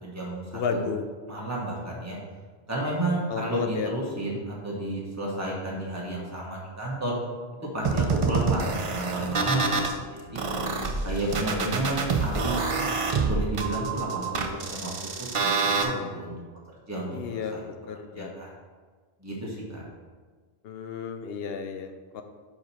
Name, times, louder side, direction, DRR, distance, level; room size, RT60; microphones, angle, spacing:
voice 1, 0.0-0.8 1.3-2.2 2.7-7.1 7.7-10.4 11.0-12.6 13.3-14.9 15.2-16.4 16.9-17.6 18.2-18.5 19.2-19.8, right 2 dB, 15° right, -4 dB, 1.3 m, -31 dB
voice 2, 0.5-1.1 3.3-3.9 17.1-18.3 20.6-22.2, left 6 dB, 75° left, 7 dB, 0.8 m, -33 dB
sound 1, 7.8-9.9 10.3-15.8, right 4 dB, 40° right, 0.5 m, -27 dB
5.9 x 5.1 x 4.2 m, 1.5 s
omnidirectional pair, 1.1 m